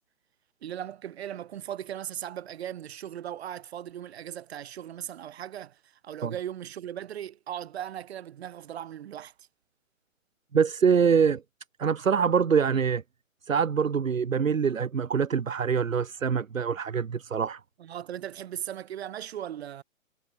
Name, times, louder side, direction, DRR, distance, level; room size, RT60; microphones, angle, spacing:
voice 1, 0.6-9.5 17.8-19.8, right 10 dB, 50° right, 6.4 m, -38 dB
voice 2, 10.5-11.4 11.8-13.0 13.5-17.6, right 6 dB, 70° right, 2.2 m, -24 dB
figure-of-eight pair, 135°, 41 cm